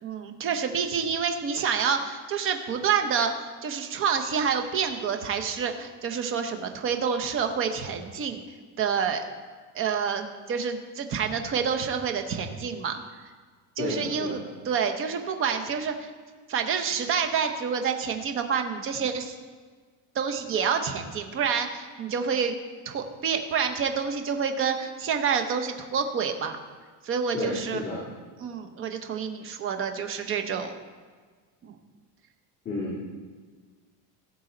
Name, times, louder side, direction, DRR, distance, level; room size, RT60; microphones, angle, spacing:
voice 1, 0.0-3.3 3.6-8.4 8.8-9.2 9.7-13.0 13.8-16.1 16.5-19.3 20.1-22.5 22.9-26.6 27.0-27.8 28.4-30.7, right 6 dB, 30° right, 6 dB, 0.9 m, -28 dB
voice 2, 13.8-14.5 27.3-28.1 32.6-33.1, left 2 dB, 20° left, -7 dB, 2.2 m, -32 dB
17.5 x 7.1 x 3.9 m, 1.5 s
cardioid pair, 165°, 44 cm